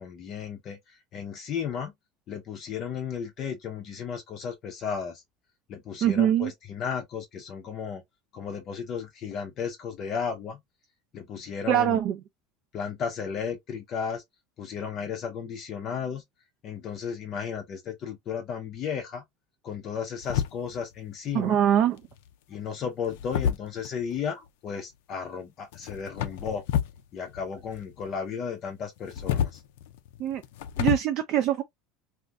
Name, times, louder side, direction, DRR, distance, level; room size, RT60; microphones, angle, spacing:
voice 1, 0.0-1.9 2.3-5.2 5.7-8.0 8.3-10.6 11.1-12.0 12.7-14.2 14.6-16.2 16.6-19.2 19.6-21.6 22.5-26.6 27.1-29.6, left 7 dB, 30° left, 0.5 m, -34 dB
voice 2, 6.0-6.5 11.7-12.2 21.3-22.0 30.2-30.4 30.8-31.6, right 11 dB, 40° right, 0.4 m, -23 dB
sound 1, 20.2-20.9 22.0-22.3 23.1-24.2 25.7-27.0 27.3-28.1 29.0-31.0, left 10 dB, 85° left, 0.4 m, -30 dB
2.5 x 2.4 x 3.2 m
cardioid pair, 170°, 0 cm